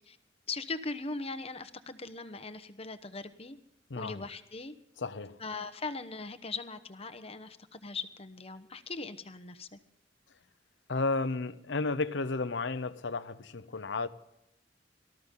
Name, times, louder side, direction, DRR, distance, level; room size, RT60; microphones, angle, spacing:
voice 1, 0.5-3.6 3.9-4.7 5.4-9.8, left 3 dB, 35° left, 1.0 m, -40 dB
voice 2, 3.9-4.2 5.0-5.4 10.9-14.1, left 3 dB, 75° left, 0.8 m, -33 dB
19.0 x 13.5 x 3.8 m
head